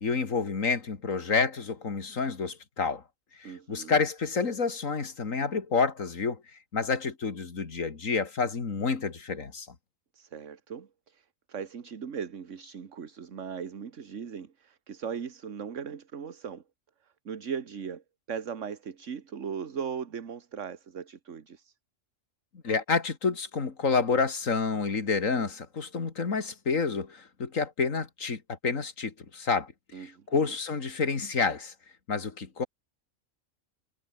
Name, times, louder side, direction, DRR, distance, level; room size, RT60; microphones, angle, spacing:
voice 1, 0.0-3.0 3.4-6.4 6.7-9.7 22.6-29.7 30.0-31.7 32.1-32.7, left 4 dB, 80° left, 2.6 m, -29 dB
voice 2, 3.4-3.9 10.1-16.6 17.3-21.7 29.9-30.6, right 7 dB, 70° right, 1.7 m, -38 dB
omnidirectional pair, 1.4 m